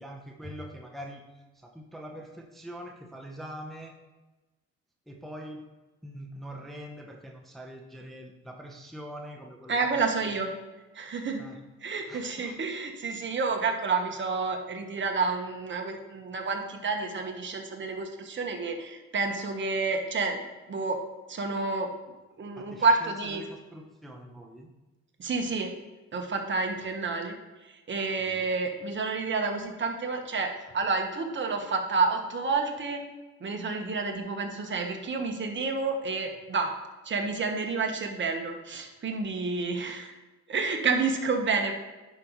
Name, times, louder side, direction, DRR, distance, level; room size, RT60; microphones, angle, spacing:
voice 1, 0.0-3.9 5.1-5.7 6.0-10.1 11.4-11.5 12.1-12.5 22.5-24.7 28.2-28.5, equal, ahead, 1 dB, 0.8 m, -43 dB
voice 2, 9.7-10.5 10.9-11.5 11.8-20.4 20.7-21.0 21.3-21.9 22.4-23.4 25.2-25.8 26.1-27.3 27.6-33.0 33.4-36.7 37.0-40.1 40.5-41.7, right 4 dB, 40° right, 3 dB, 1.3 m, -29 dB
10.5 x 5.1 x 3.1 m, 1.2 s
cardioid pair, 90°, 30 cm